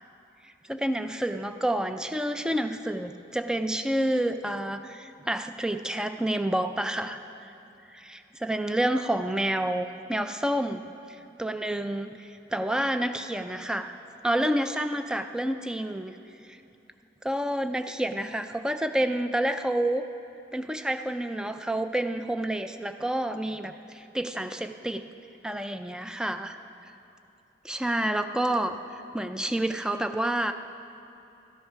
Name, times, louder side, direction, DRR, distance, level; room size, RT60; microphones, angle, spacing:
voice 1, 0.4-7.5 7.9-13.9 14.2-16.2 16.4-16.6 17.2-20.1 20.5-25.0 25.4-26.6 27.6-30.5, right 1 dB, 5° right, 8 dB, 0.3 m, -29 dB
13.0 x 8.9 x 5.6 m, 2.9 s
head